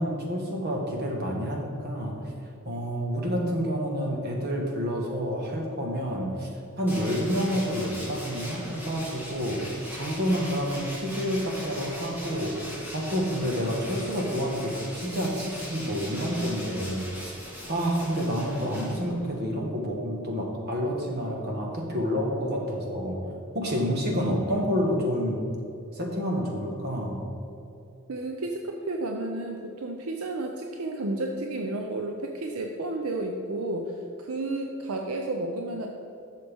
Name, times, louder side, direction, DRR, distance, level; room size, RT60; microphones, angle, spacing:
voice 1, 0.0-2.3 2.6-17.3 17.7-23.2 23.5-25.4 25.9-27.3, equal, 50° right, 0 dB, 1.5 m, -29 dB
Tools, 6.9-19.4, equal, 10° right, 1.6 m, -40 dB
voice 2, 28.1-35.9, right 2 dB, 80° right, 2 dB, 0.6 m, -32 dB
11.5 x 6.6 x 3.5 m, 2.8 s
head